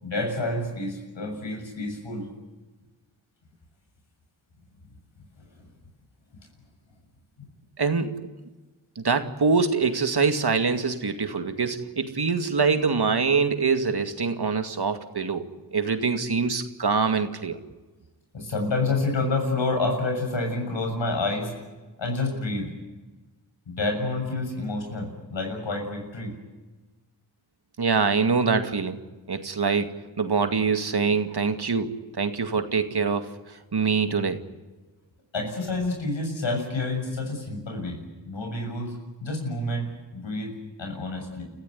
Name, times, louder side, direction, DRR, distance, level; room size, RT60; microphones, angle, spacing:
voice 1, 0.0-2.3 5.4-5.7 7.4-7.5 18.3-21.5 22.0-22.7 23.7-26.4 35.3-38.0 38.3-41.4, left 2 dB, 90° left, 3 dB, 7.1 m, -29 dB
voice 2, 7.8-8.1 9.0-17.6 27.8-29.0 29.3-33.4 33.7-34.4, right 5 dB, 60° right, 7 dB, 2.3 m, -24 dB
30.0 x 15.0 x 9.8 m, 1.2 s
cardioid pair, 50°, 44 cm